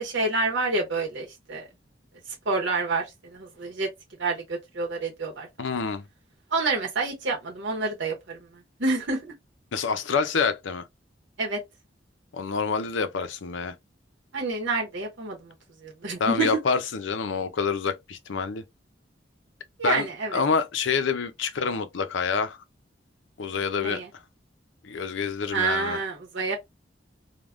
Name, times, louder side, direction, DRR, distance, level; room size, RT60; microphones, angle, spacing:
voice 1, 0.0-1.7 2.5-3.1 3.3-3.9 4.2-5.5 6.5-8.4 8.8-9.3 11.4-11.6 14.3-15.5 15.8-16.6 19.8-20.4 23.8-24.1 25.5-26.6, right 3 dB, 85° right, 0.9 m, -28 dB
voice 2, 5.6-6.0 9.7-10.8 12.3-13.7 16.2-18.6 19.8-22.6 23.4-24.0 24.8-26.0, left 5 dB, 90° left, 0.5 m, -27 dB
3.4 x 2.2 x 2.4 m
head